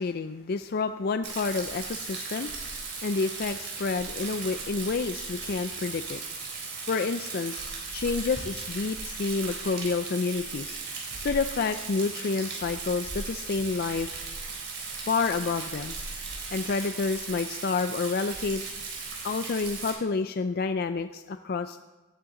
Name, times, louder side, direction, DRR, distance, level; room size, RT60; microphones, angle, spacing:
voice 1, 0.0-2.5 3.0-6.2 6.9-7.7 7.9-10.8 11.2-14.1 15.0-15.9 16.5-18.6 19.2-21.8, left 4 dB, 50° left, 9 dB, 0.4 m, -29 dB
Rain, 1.2-19.9, right 4 dB, 55° right, 3.6 m, -37 dB
17.0 x 9.9 x 3.8 m, 1.2 s
head